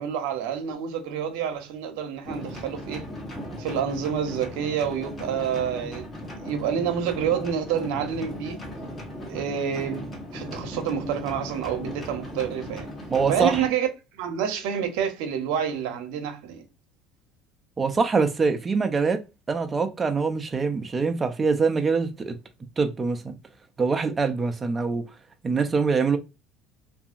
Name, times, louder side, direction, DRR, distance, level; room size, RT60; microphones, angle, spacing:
voice 1, 0.0-3.0 3.6-6.1 6.4-8.6 9.3-12.9 13.3-13.9 14.1-16.6, right 8 dB, 80° right, 0.7 m, -28 dB
sound 1, 2.2-13.7, equal, 20° left, 1.4 m, -37 dB
voice 2, 13.1-13.6 17.8-19.2 19.5-22.4 22.8-23.4 23.8-25.0 25.4-26.2, right 4 dB, 25° right, 0.5 m, -24 dB
2.7 x 2.7 x 2.4 m
supercardioid pair, 105°, 0 cm